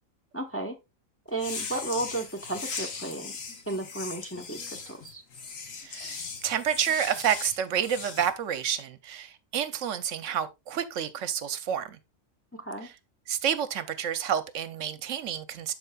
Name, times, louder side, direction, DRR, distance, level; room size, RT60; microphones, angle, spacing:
voice 1, 0.3-0.7 1.3-3.3 3.7-5.2 12.5-12.9, right 2 dB, 15° left, 0.7 m, -34 dB
sound 1, 1.3-8.3, left 5 dB, 75° left, 1.6 m, -39 dB
voice 2, 5.8-12.0 13.3-15.7, right 9 dB, 70° right, 1.0 m, -29 dB
12.5 x 4.6 x 2.3 m
omnidirectional pair, 1.4 m